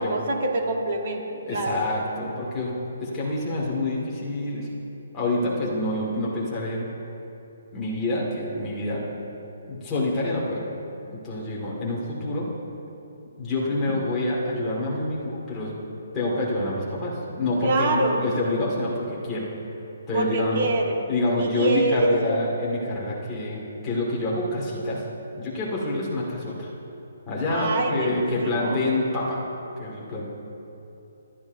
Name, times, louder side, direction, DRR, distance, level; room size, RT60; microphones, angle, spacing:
voice 1, 0.0-1.9 4.6-4.7 13.9-14.0 17.6-18.2 20.1-21.0 21.4-22.5 27.5-28.8, right 2 dB, 35° right, 2 dB, 1.3 m, -25 dB
voice 2, 1.5-4.7 5.1-6.8 7.7-9.0 9.7-10.6 11.2-12.5 13.4-15.7 16.1-19.5 20.1-20.6 21.1-25.0 25.4-26.7 27.3-29.4 29.8-30.3, left 2 dB, 10° left, -6 dB, 1.7 m, -27 dB
25.5 x 11.0 x 2.6 m, 2.9 s
hypercardioid pair, 180°, 0 cm